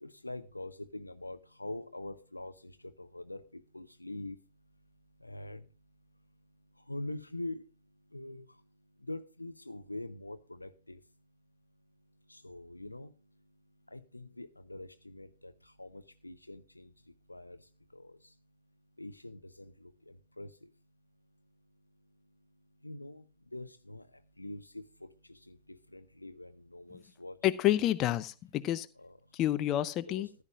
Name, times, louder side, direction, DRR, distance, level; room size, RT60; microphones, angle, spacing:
voice 1, 0.0-2.7 3.0-4.4 5.2-5.6 6.9-7.6 8.1-8.5 9.1-11.0 12.3-13.1 13.9-15.5 15.8-16.9 17.3-17.6 18.0-18.1 19.0-19.9 20.4-20.5 22.8-23.2 23.5-24.0 24.4-24.9 25.5-27.4 29.0-29.1 29.7-30.4, left 2 dB, 85° left, 13 dB, 0.7 m, -44 dB
voice 2, 27.4-28.9 29.3-30.3, left 13 dB, 35° left, 13 dB, 0.6 m, -29 dB
14.5 x 11.0 x 2.4 m, 0.33 s
figure-of-eight pair, 90°, 0 cm